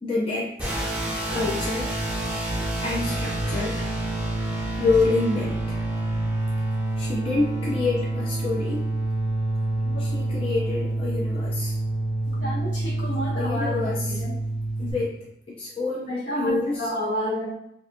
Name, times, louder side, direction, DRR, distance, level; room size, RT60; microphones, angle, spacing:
voice 1, 0.0-0.7 1.3-1.9 2.8-3.9 4.8-5.8 7.0-9.0 10.0-11.8 13.3-14.2 14.8-15.2 15.5-16.9, left 3 dB, 30° left, -5 dB, 0.5 m, -27 dB
sound 1, 0.6-14.9, right 1 dB, 5° right, 0.7 m, -27 dB
voice 2, 12.3-13.8 14.2-14.3 16.1-17.5, equal, 80° left, -5 dB, 1.0 m, -29 dB
2.5 x 2.3 x 2.6 m, 0.77 s
head